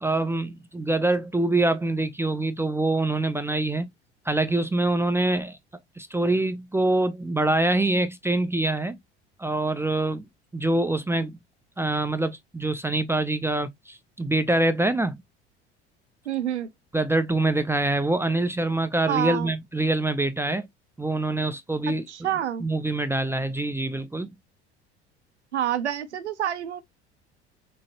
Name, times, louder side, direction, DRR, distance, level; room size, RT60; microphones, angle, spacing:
voice 1, 0.0-3.9 4.3-5.6 6.0-9.0 9.4-10.3 10.5-11.4 11.8-15.2 16.9-20.7 21.0-22.0 22.6-24.3, right 2 dB, 5° right, 0.5 m, -25 dB
voice 2, 16.3-16.7 19.1-19.5 22.1-22.7 25.5-26.8, right 10 dB, 80° right, 0.6 m, -27 dB
6.1 x 2.1 x 2.8 m
figure-of-eight pair, 65°, 34 cm